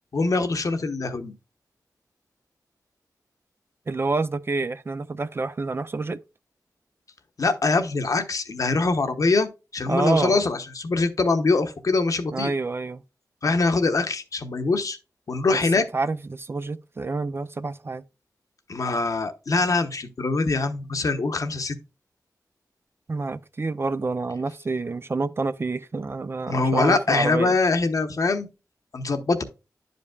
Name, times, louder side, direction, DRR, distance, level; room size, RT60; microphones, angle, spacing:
voice 1, 0.1-1.3 7.4-12.5 13.4-15.0 15.3-15.8 18.7-21.8 26.5-28.5 28.9-29.4, left 3 dB, 60° left, 0.9 m, -23 dB
voice 2, 3.9-6.2 9.9-10.4 12.3-13.0 15.9-18.0 23.1-27.6, right 3 dB, 35° right, 0.4 m, -28 dB
11.0 x 5.2 x 2.3 m
wide cardioid pair, 100°, 7 cm